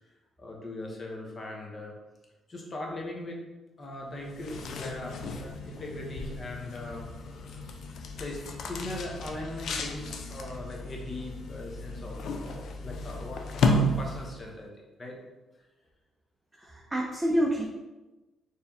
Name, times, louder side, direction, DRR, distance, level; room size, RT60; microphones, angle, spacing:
voice 1, 0.4-1.9 2.5-3.4 3.8-7.1 8.2-14.7 15.0-15.2 16.6-16.7, left 1 dB, 35° left, 0 dB, 1.0 m, -40 dB
sound 1, 4.2-14.6, left 2 dB, 65° left, 0.5 m, -33 dB
voice 2, 16.6-17.7, equal, 15° right, -2 dB, 0.6 m, -27 dB
4.4 x 3.3 x 2.8 m, 1.1 s
cardioid pair, 90°, 0 cm